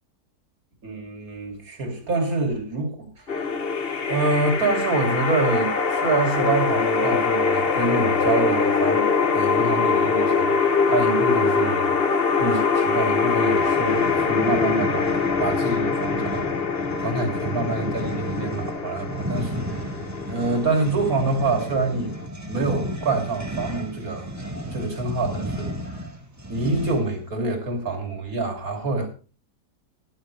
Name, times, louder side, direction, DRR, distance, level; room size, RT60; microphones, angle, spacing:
voice 1, 0.8-3.6 4.1-12.0 12.4-16.5 17.0-19.9 20.3-22.2 22.5-24.3 24.7-26.1 26.5-29.1, right 3 dB, 60° right, 4 dB, 3.2 m, -26 dB
sound 1, 3.3-22.2, left 5 dB, 40° left, 1.1 m, -23 dB
sound 2, 13.5-27.2, right 1 dB, 10° right, 1.5 m, -33 dB
13.5 x 12.0 x 3.3 m, 0.35 s
omnidirectional pair, 1.7 m